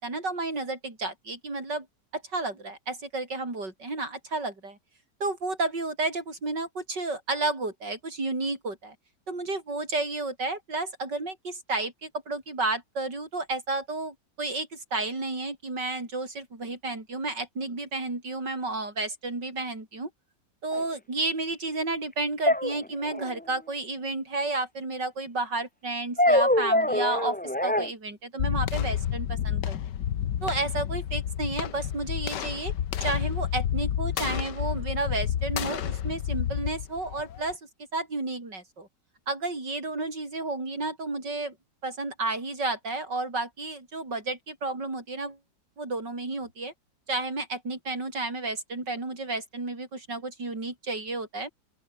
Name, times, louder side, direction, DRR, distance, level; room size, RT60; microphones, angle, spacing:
voice 1, 0.0-1.9 2.1-4.8 5.2-8.9 9.3-20.1 20.6-27.4 27.6-29.8 30.4-32.7 33.0-37.6 37.9-38.9 39.3-41.5 41.8-45.4 45.8-46.7 47.1-51.5, right 2 dB, 80° right, 6.7 m, -32 dB
sound 1, 20.7-20.8 22.4-23.4 26.2-27.9, left 1 dB, 5° left, 1.0 m, -24 dB
sound 2, 28.4-37.5, left 10 dB, 80° left, 1.8 m, -30 dB
open air
omnidirectional pair, 1.9 m